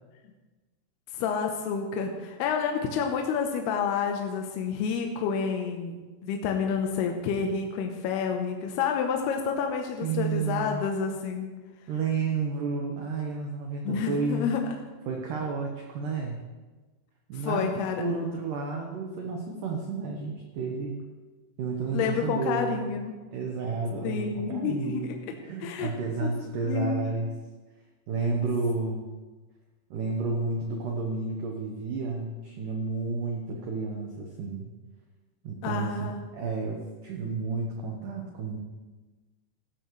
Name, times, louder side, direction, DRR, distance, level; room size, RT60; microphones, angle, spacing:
voice 1, 1.1-11.5 13.8-14.6 17.3-18.0 21.9-23.1 24.0-25.2 25.6-25.9 26.2-26.3 26.6-27.1 35.6-36.2, left 6 dB, 75° left, 3 dB, 2.5 m, -29 dB
voice 2, 10.0-10.8 11.9-14.5 15.1-16.4 17.3-21.0 21.6-22.9 23.3-25.1 25.4-27.3 28.1-29.0 29.9-34.7 35.4-38.6, right 4 dB, 80° right, 1 dB, 1.9 m, -31 dB
16.0 x 13.0 x 3.2 m, 1.3 s
omnidirectional pair, 5.5 m